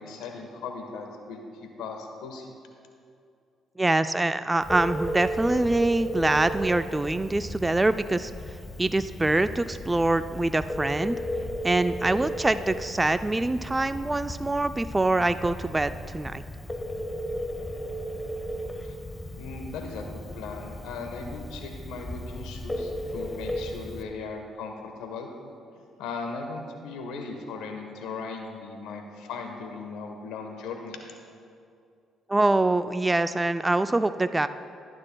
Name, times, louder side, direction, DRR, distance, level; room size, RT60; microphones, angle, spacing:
voice 1, 0.0-2.5 18.8-19.0 19.4-25.3 25.7-31.0, left 4 dB, 85° left, 4 dB, 1.2 m, -38 dB
voice 2, 3.8-8.3 8.8-11.2 11.6-16.4 32.3-34.5, right 2 dB, 20° right, 11 dB, 0.3 m, -24 dB
Telephone, 4.6-24.0, equal, 20° left, 1.1 m, -35 dB
20.5 x 9.7 x 2.3 m, 2.5 s
supercardioid pair, 65°, 0 cm